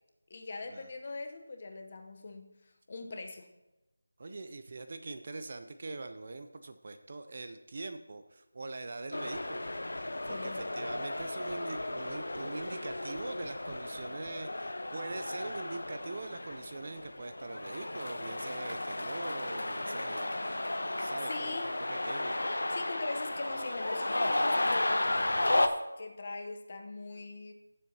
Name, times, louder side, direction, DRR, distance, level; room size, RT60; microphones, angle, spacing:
voice 1, 0.3-2.5 2.9-3.5 10.2-10.7 21.3-21.7 22.7-25.7 26.0-27.5, left 3 dB, 30° left, 5 dB, 0.8 m, -41 dB
voice 2, 4.2-9.6 10.3-21.6 21.9-22.4, right 3 dB, 30° right, 8 dB, 0.5 m, -43 dB
sound 1, 9.1-25.7, left 1 dB, 80° left, 0.9 m, -34 dB
16.5 x 7.6 x 2.8 m, 0.99 s
figure-of-eight pair, 175°, 0 cm